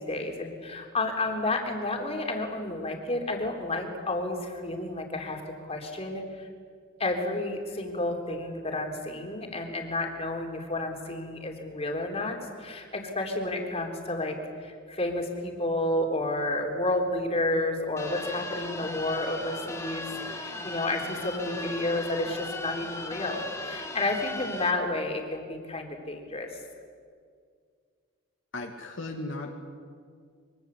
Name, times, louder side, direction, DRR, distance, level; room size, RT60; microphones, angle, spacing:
voice 1, 0.0-6.5 7.0-14.4 14.6-26.5, left 2 dB, 30° left, 2 dB, 3.6 m, -31 dB
sound 1, 18.0-24.7, left 2 dB, 15° left, 2.0 m, -37 dB
voice 2, 28.5-29.5, left 2 dB, 65° left, 2 dB, 2.4 m, -36 dB
24.5 x 23.5 x 8.3 m, 2.1 s
head